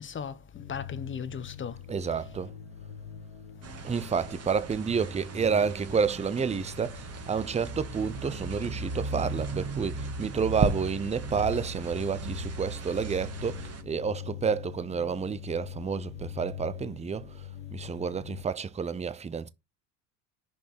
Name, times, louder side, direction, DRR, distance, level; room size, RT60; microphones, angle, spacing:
voice 1, 0.0-1.8 2.0-2.3, left 7 dB, 25° left, 1.2 m, -37 dB
sound 1, 0.5-18.4, left 8 dB, 75° left, 1.6 m, -44 dB
voice 2, 1.9-2.5 3.8-19.5, right 6 dB, 15° right, 0.7 m, -30 dB
sound 2, 3.6-13.8, right 3 dB, 30° right, 1.8 m, -36 dB
7.0 x 5.3 x 6.3 m
supercardioid pair, 100°, 47 cm